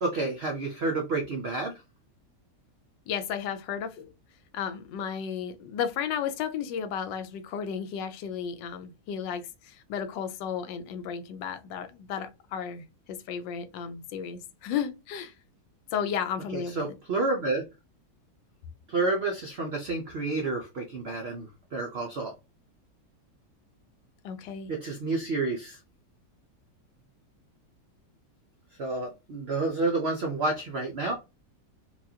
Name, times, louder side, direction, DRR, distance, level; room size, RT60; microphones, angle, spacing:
voice 1, 0.0-1.7 16.5-17.6 18.9-22.3 24.7-25.8 28.8-31.2, right 3 dB, 75° right, 0.5 m, -29 dB
voice 2, 3.1-4.1 4.5-15.3 15.9-16.8 24.2-24.7, left 8 dB, 85° left, 1.3 m, -33 dB
4.4 x 2.3 x 2.7 m
omnidirectional pair, 1.9 m